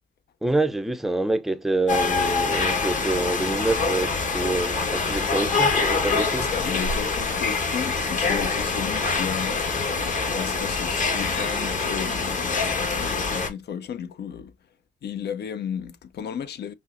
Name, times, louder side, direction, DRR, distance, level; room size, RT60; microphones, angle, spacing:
voice 1, 0.4-6.5, right 2 dB, ahead, 0.5 m, -26 dB
sound 1, 1.9-13.5, left 4 dB, 40° left, 1.3 m, -25 dB
voice 2, 6.5-9.7 10.3-14.5 15.0-16.7, left 8 dB, 55° left, 0.6 m, -34 dB
5.4 x 2.0 x 2.5 m
cardioid pair, 90°, 20 cm